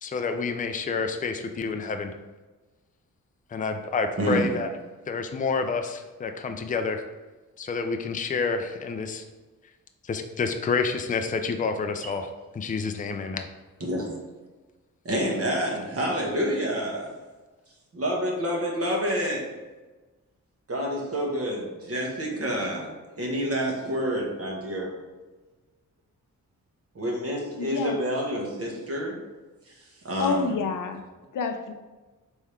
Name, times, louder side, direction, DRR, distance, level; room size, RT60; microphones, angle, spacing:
voice 1, 0.0-2.1 3.5-4.7 5.1-7.0 7.6-9.2 10.1-13.5, left 4 dB, 25° left, 6 dB, 0.4 m, -28 dB
voice 2, 4.2-4.5 13.8-14.1 15.0-17.1 17.9-19.5 20.7-24.9 26.9-29.2 29.7-30.5, equal, 45° right, -1 dB, 1.3 m, -28 dB
voice 3, 27.6-28.0 30.2-31.0 31.3-31.7, left 5 dB, 70° left, 6 dB, 0.6 m, -28 dB
3.5 x 3.4 x 4.4 m, 1.2 s
cardioid pair, 65°, 33 cm